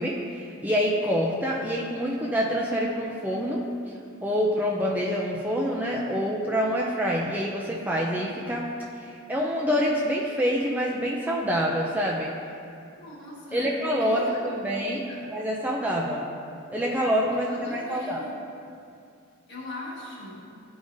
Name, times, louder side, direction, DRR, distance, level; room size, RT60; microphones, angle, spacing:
voice 1, 0.0-3.6 4.2-8.7 9.0-12.3 13.5-15.1 15.3-16.2 16.7-18.2, equal, 10° right, -3 dB, 0.4 m, -26 dB
voice 2, 12.9-14.5 14.8-15.3 17.4-18.4 19.5-20.5, left 1 dB, 55° left, -5 dB, 1.5 m, -40 dB
12.0 x 4.9 x 2.6 m, 2.5 s
head